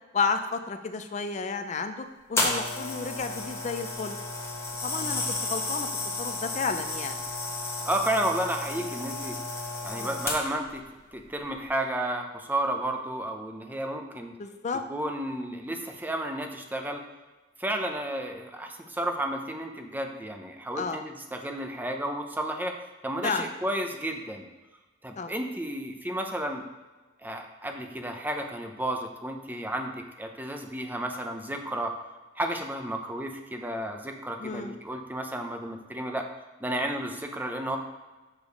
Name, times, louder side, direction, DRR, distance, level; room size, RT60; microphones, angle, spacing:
voice 1, 0.1-4.2 4.8-5.9 6.2-7.2 10.0-10.1 14.4-14.8 20.8-21.0 23.2-23.5 25.2-25.3 34.4-34.8, left 4 dB, 40° left, 8 dB, 0.4 m, -32 dB
sound 1, 2.4-10.7 11.4-11.6, left 2 dB, 15° left, 1.2 m, -32 dB
voice 2, 7.8-9.4 9.8-10.8 11.1-14.3 14.9-17.0 17.6-22.7 23.0-24.5 25.0-26.6 27.2-31.9 32.4-36.2 36.6-37.8, right 1 dB, 10° right, 4 dB, 0.6 m, -32 dB
6.6 x 5.0 x 5.2 m, 1.2 s
head